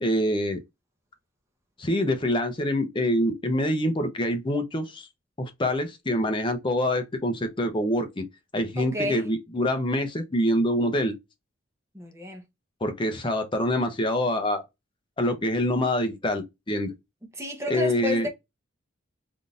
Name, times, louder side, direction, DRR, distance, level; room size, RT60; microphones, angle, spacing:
voice 1, 0.0-0.6 1.8-5.1 5.4-8.3 8.5-11.1 12.8-14.6 15.2-16.9 17.7-18.3, left 1 dB, 25° left, 0.6 m, -25 dB
voice 2, 8.8-9.3 11.9-12.4 17.4-18.3, left 2 dB, 15° right, 0.8 m, -31 dB
3.6 x 2.6 x 2.4 m
head